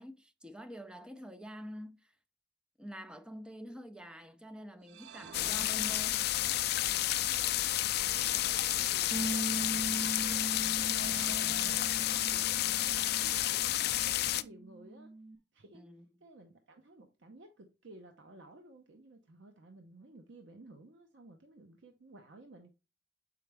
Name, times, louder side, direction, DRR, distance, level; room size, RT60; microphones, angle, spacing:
voice 1, 0.0-2.1 2.8-6.4 15.7-16.1, equal, 5° right, 0.5 m, -46 dB
sound 1, 4.8-6.5 7.8-9.5 10.7-12.6, right 7 dB, 70° right, 0.4 m, -51 dB
sound 2, 5.3-14.4, left 14 dB, 60° left, 0.3 m, -31 dB
voice 2, 8.7-15.1 15.5-15.9 16.2-22.7, right 2 dB, 85° right, 0.8 m, -55 dB
Bass guitar, 9.1-15.4, right 2 dB, 30° right, 1.1 m, -41 dB
6.9 x 5.0 x 3.3 m
head